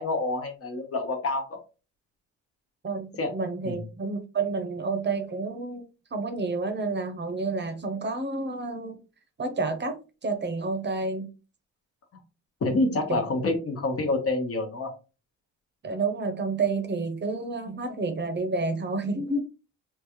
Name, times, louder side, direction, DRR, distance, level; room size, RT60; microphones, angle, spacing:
voice 1, 0.0-1.6 3.2-3.3 3.6-3.8 12.6-14.9, left 2 dB, 50° left, 1.1 m, -27 dB
voice 2, 2.8-5.8 6.1-9.0 9.4-10.0 10.2-11.3 13.1-13.2 15.8-19.4, right 3 dB, 35° right, 0.8 m, -29 dB
3.8 x 2.4 x 3.0 m
cardioid pair, 90°, 30 cm